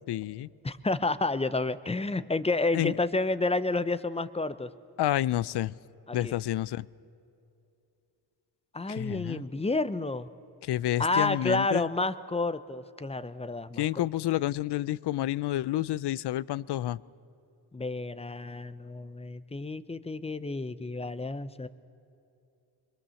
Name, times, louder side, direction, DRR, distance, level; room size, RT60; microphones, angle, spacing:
voice 1, 0.1-0.5 2.7-2.9 5.0-5.7 6.1-6.9 8.9-9.4 10.6-11.9 13.8-17.0, left 14 dB, 75° left, 21 dB, 0.5 m, -29 dB
voice 2, 0.6-4.7 6.1-6.3 8.7-10.3 11.0-13.8 17.7-21.7, left 3 dB, 15° left, 14 dB, 0.5 m, -30 dB
25.0 x 22.0 x 7.0 m, 2.7 s
wide cardioid pair, 155°, 40 cm